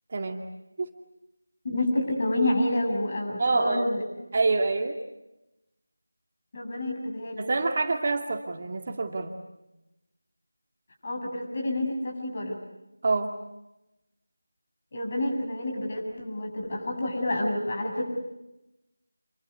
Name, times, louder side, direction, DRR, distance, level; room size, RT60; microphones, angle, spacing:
voice 1, 0.1-0.4 0.8-0.9 3.4-3.9 4.3-5.0 7.4-9.3 13.0-13.3, right 3 dB, 35° right, 5 dB, 2.1 m, -26 dB
voice 2, 1.6-4.0 6.5-7.5 11.0-12.6 14.9-18.0, left 1 dB, 35° left, 2 dB, 7.8 m, -28 dB
28.0 x 23.5 x 8.4 m, 0.95 s
figure-of-eight pair, 170°, 0 cm